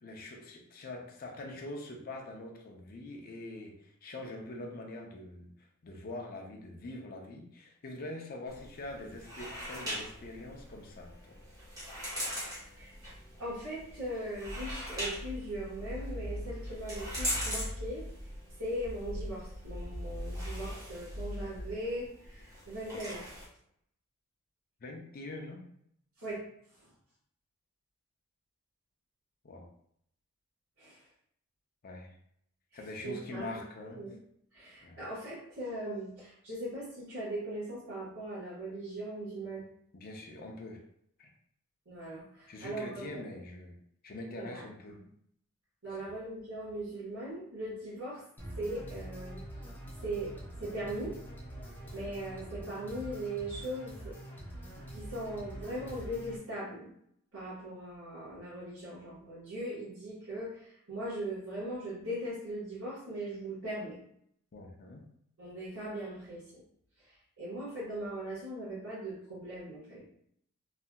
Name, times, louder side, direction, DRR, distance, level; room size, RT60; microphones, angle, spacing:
voice 1, 0.0-5.5 5.8-11.3 24.8-25.6 29.4-29.7 31.8-32.1 32.7-34.1 34.8-35.0 39.9-40.8 41.2-41.3 42.5-43.8 44.0-45.0 45.8-46.1 64.5-65.0, left 2 dB, 45° left, 1 dB, 0.5 m, -44 dB
sound 1, 8.5-23.5, equal, 15° right, 1.1 m, -42 dB
voice 2, 13.4-18.0 18.6-23.2 26.2-26.4 30.8-31.0 33.0-34.1 34.5-39.6 41.9-43.1 44.4-44.6 44.9-45.0 45.8-48.2 48.6-49.4 50.0-50.3 50.6-51.2 51.9-54.1 54.9-56.9 57.3-64.0 65.4-66.6 67.4-70.1, right 1 dB, 65° right, -12 dB, 1.4 m, -39 dB
sound 2, 14.4-21.8, equal, 50° right, 0.6 m, -41 dB
sound 3, 48.4-56.4, right 1 dB, 10° left, 0.7 m, -45 dB
3.2 x 2.7 x 2.2 m, 0.69 s
head